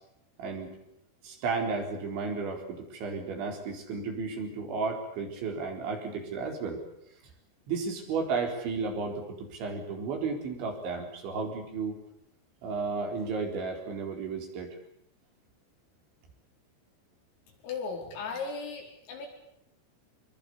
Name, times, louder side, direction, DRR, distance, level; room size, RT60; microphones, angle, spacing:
voice 1, 0.4-0.7 1.2-6.8 7.7-12.0 12.6-14.8, right 4 dB, 65° right, 3 dB, 6.4 m, -33 dB
voice 2, 17.6-19.3, left 4 dB, 90° left, 1 dB, 7.6 m, -36 dB
26.0 x 22.5 x 8.5 m, 0.78 s
omnidirectional pair, 5.8 m